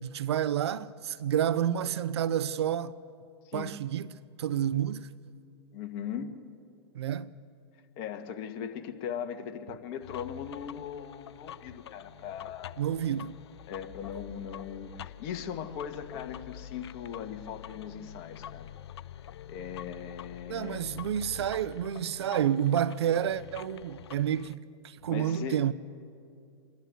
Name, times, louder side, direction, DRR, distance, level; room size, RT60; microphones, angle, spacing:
voice 1, 0.0-2.9 3.5-5.1 6.9-7.3 12.8-13.4 20.5-25.7, right 10 dB, 70° right, 0.7 m, -29 dB
voice 2, 5.7-6.4 8.0-12.7 13.7-18.7 19.5-21.0 25.1-25.6, left 8 dB, 45° left, 1.8 m, -39 dB
sound 1, 10.0-24.6, left 10 dB, 75° left, 0.6 m, -46 dB
28.5 x 11.5 x 8.0 m
hypercardioid pair, 115°, 14 cm